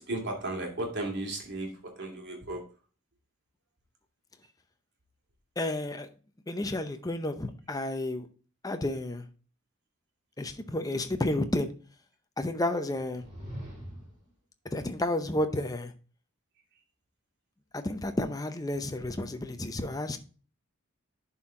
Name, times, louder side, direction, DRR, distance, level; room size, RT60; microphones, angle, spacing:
voice 1, 0.0-2.6, right 2 dB, 55° right, 2.7 m, -35 dB
voice 2, 5.6-6.1 6.5-8.3 8.6-9.2 10.4-11.7 12.4-13.2 14.7-15.9 17.7-20.2, left 1 dB, 20° left, 0.7 m, -31 dB
sound 1, 13.1-14.3, equal, 35° right, 4.3 m, -42 dB
11.0 x 4.5 x 3.7 m
head